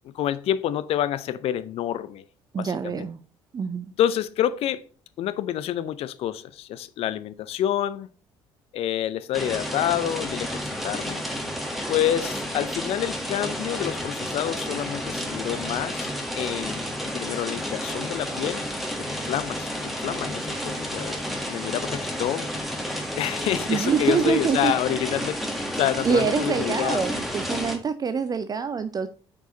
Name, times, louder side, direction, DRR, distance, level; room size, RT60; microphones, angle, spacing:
voice 1, 0.1-2.2 2.6-3.1 4.0-4.8 5.2-8.1 8.7-11.2 11.9-16.1 16.4-16.8 17.1-18.7 19.1-21.2 21.5-22.5 23.2-25.4 25.8-27.1, left 11 dB, 50° left, 0.5 m, -28 dB
voice 2, 2.5-3.2 3.5-3.9 23.7-24.7 26.0-29.1, right 6 dB, 30° right, 0.5 m, -25 dB
sound 1, 9.3-27.8, equal, ahead, 1.8 m, -31 dB
8.5 x 4.7 x 3.8 m
figure-of-eight pair, 50°, 13 cm